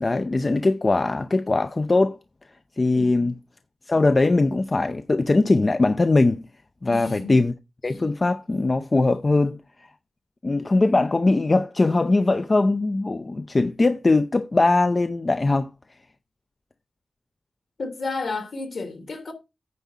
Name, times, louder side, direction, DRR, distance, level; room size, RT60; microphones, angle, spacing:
voice 1, 0.0-2.2 2.8-3.4 3.9-6.5 6.8-7.5 7.8-9.6 10.4-15.7, left 2 dB, 35° left, 0.6 m, -21 dB
voice 2, 2.9-3.3 6.9-7.4 17.8-19.3, left 3 dB, 65° left, 2.7 m, -32 dB
9.5 x 4.8 x 5.6 m
wide cardioid pair, 75°, 0 cm